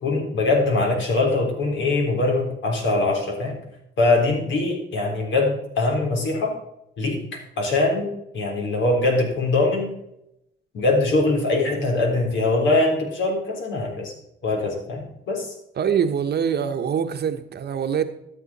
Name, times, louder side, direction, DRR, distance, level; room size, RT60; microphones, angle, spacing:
voice 1, 0.0-3.5 4.0-6.5 7.0-8.1 8.3-9.9 10.7-14.1 14.4-15.5, left 2 dB, 70° left, 3.7 m, -22 dB
voice 2, 15.8-18.0, right 7 dB, 55° right, 1.1 m, -24 dB
13.0 x 7.7 x 4.2 m
cardioid pair, 90°, 20 cm